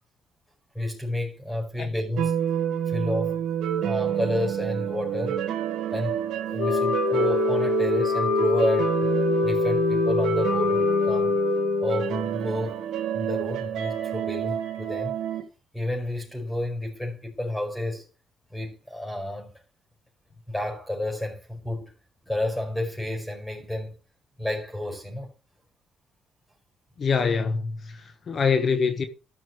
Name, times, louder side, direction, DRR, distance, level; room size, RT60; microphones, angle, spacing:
voice 1, 0.7-2.3 2.9-3.4 3.8-5.4 5.9-6.2 6.5-9.0 9.4-11.4 11.8-12.8 13.1-15.1 15.7-18.1 18.5-19.5 20.5-21.9 22.3-24.0 24.4-25.3, left 1 dB, 5° left, 5.0 m, -30 dB
sound 1, 2.2-15.4, right 10 dB, 80° right, 1.6 m, -28 dB
Wind instrument woodwind instrument, 6.6-12.2, left 7 dB, 85° left, 2.0 m, -25 dB
voice 2, 27.0-28.0 28.3-29.0, left 5 dB, 50° left, 1.3 m, -24 dB
13.0 x 5.9 x 4.8 m
cardioid pair, 90°, 0 cm